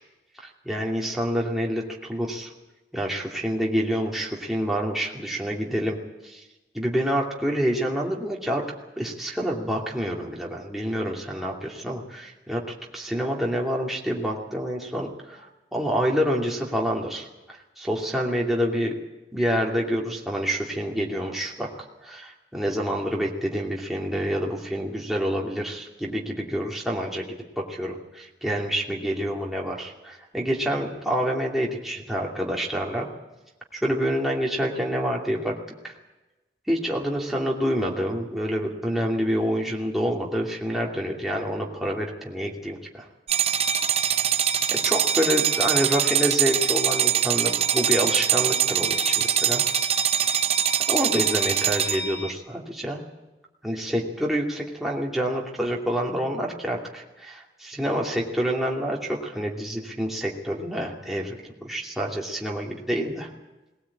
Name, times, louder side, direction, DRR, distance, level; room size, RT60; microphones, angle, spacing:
voice 1, 0.4-2.5 2.9-6.0 6.2-6.4 6.7-8.7 9.0-12.6 12.9-18.9 19.3-21.7 22.0-27.3 27.6-33.1 33.7-35.5 35.8-35.9 36.7-43.1 44.8-49.6 50.9-53.0 53.6-63.3, equal, ahead, -3 dB, 2.6 m, -27 dB
sound 1, 43.3-52.3, right 9 dB, 35° right, 0.9 m, -23 dB
19.5 x 18.5 x 8.6 m, 1.1 s
head